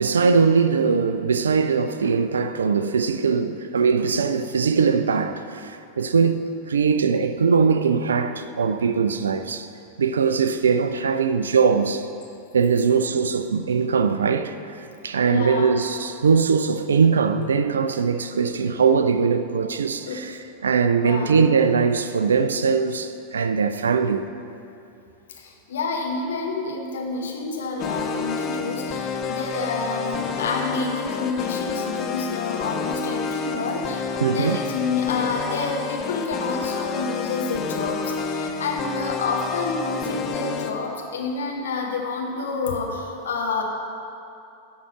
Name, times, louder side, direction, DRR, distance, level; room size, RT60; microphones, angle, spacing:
voice 1, 0.0-9.7 10.0-12.1 12.5-24.3 34.2-34.6, right 5 dB, 70° right, 0.3 m, -21 dB
voice 2, 15.2-15.7 20.1-20.3 20.9-21.4 25.4-43.6, left 4 dB, 65° left, 1.1 m, -28 dB
sound 1, 27.8-40.7, left 5 dB, 30° left, 0.5 m, -29 dB
11.0 x 3.7 x 6.7 m
figure-of-eight pair, 90°, 0 cm